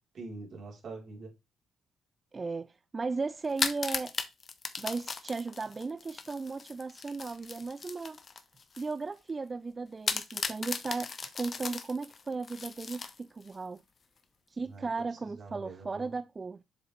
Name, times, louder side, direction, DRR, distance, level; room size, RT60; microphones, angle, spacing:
voice 1, 0.1-1.3 14.7-14.9 15.4-16.1, right 3 dB, 55° right, 3.6 m, -44 dB
voice 2, 2.3-4.2 4.8-8.2 8.8-13.8 14.5-16.6, right 4 dB, 30° right, 0.4 m, -36 dB
sound 1, 3.4-8.9 9.3-9.4 10.1-13.5, left 5 dB, 40° left, 1.0 m, -37 dB
7.4 x 7.1 x 3.2 m
cardioid pair, 90°, 0 cm